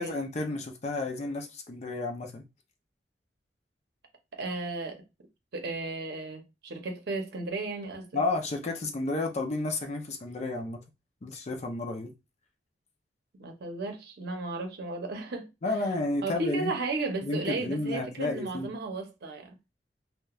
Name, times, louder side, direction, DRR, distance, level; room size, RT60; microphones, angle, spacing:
voice 1, 0.0-2.4 8.1-10.8 11.2-12.1 15.6-16.7 17.2-18.7, left 2 dB, 40° left, 0.5 m, -31 dB
voice 2, 4.3-5.0 5.5-8.2 13.4-15.5 16.2-19.5, right 3 dB, 65° right, 0.6 m, -34 dB
2.9 x 2.1 x 2.3 m
head